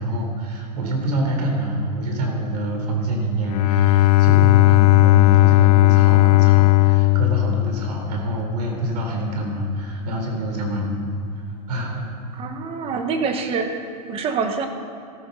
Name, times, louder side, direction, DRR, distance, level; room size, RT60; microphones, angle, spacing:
voice 1, 0.0-11.1 11.7-12.0, right 1 dB, 80° right, 1 dB, 3.8 m, -26 dB
Bowed string instrument, 3.4-8.4, left 19 dB, 70° left, 0.5 m, -15 dB
voice 2, 12.4-14.7, right 5 dB, 30° right, 6 dB, 1.4 m, -26 dB
14.0 x 12.5 x 5.6 m, 2.5 s
supercardioid pair, 145°, 20 cm